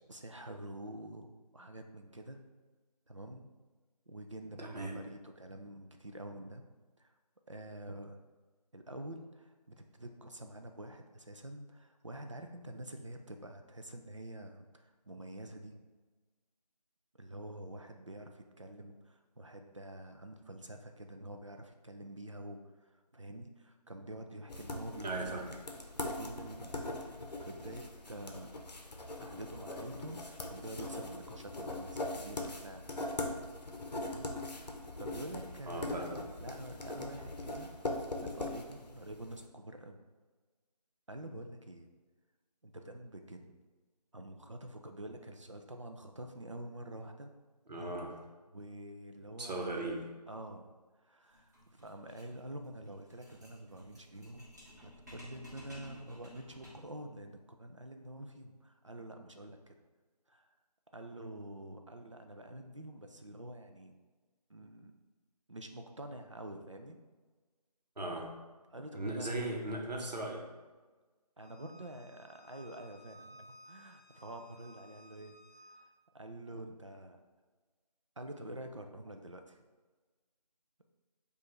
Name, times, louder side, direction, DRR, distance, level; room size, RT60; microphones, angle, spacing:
voice 1, 0.1-2.4 3.1-3.5 4.1-6.6 7.0-7.1 7.5-8.2 8.7-15.8 17.2-25.4 26.0-27.0 27.4-28.6 29.2-33.1 33.9-34.3 34.5-34.7 34.9-36.0 36.4-40.0 41.1-41.9 42.6-43.5 44.1-47.3 48.5-49.6 50.3-54.5 54.8-59.8 60.3-60.5 60.9-64.0 64.5-64.9 65.5-67.0 68.7-69.3 71.4-75.4 75.7-75.8 76.1-77.2 78.2-79.6, right 1 dB, 50° right, 5 dB, 0.4 m, -47 dB
voice 2, 4.6-5.0 25.0-25.5 35.7-36.2 47.7-48.2 49.4-50.1 68.0-68.3 68.9-70.5, right 2 dB, 80° right, 1 dB, 0.9 m, -38 dB
sound 1, 24.5-39.3, left 2 dB, 75° left, 0.7 m, -41 dB
sound 2, 51.3-57.0, equal, 25° right, 1.0 m, -55 dB
Bowed string instrument, 71.4-75.8, left 1 dB, 40° left, 0.8 m, -58 dB
4.7 x 2.5 x 3.1 m, 1.3 s
figure-of-eight pair, 175°, 21 cm